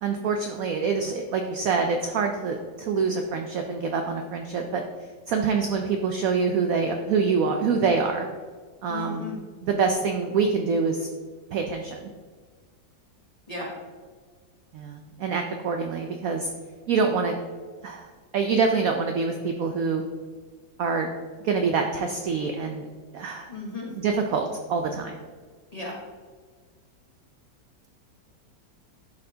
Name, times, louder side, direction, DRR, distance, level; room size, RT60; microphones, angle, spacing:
voice 1, 0.0-4.8 5.3-8.3 8.8-9.2 9.6-11.1 11.5-12.1 14.7-16.5 16.9-17.4 17.8-20.0 20.8-21.1 21.4-22.9 23.1-23.5 24.0-25.2, right 5 dB, 75° right, 4 dB, 0.8 m, -25 dB
voice 2, 8.9-9.4 13.5-13.7 23.5-23.9 25.7-26.0, left 3 dB, 25° left, -4 dB, 0.9 m, -35 dB
11.5 x 4.3 x 2.8 m, 1.5 s
omnidirectional pair, 2.0 m